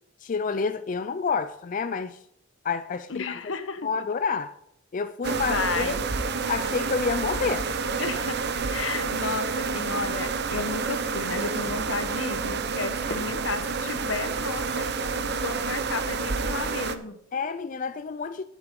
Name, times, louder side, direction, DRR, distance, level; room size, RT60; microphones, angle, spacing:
voice 1, 0.2-2.2 2.6-3.5 3.8-4.5 4.9-6.0 6.5-7.7 17.3-18.4, left 5 dB, 40° left, 0.4 m, -29 dB
voice 2, 3.1-3.9 5.5-6.0 8.0-8.4 8.7-17.2, left 4 dB, 75° left, 1.1 m, -33 dB
sound 1, 5.2-17.0, right 4 dB, 55° right, 0.8 m, -29 dB
11.5 x 8.9 x 3.7 m
head